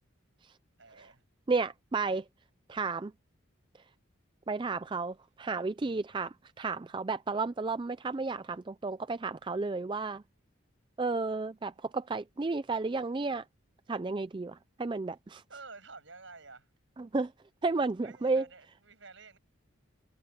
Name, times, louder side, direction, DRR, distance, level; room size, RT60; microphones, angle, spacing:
voice 1, 0.8-1.3 5.9-6.0 15.5-16.7 18.0-19.4, right 4 dB, 65° right, 7.7 m, -51 dB
voice 2, 1.5-2.2 2.7-3.1 4.5-10.2 11.0-13.4 13.9-15.4 17.0-17.3 17.6-18.4, right 3 dB, 20° right, 0.3 m, -32 dB
head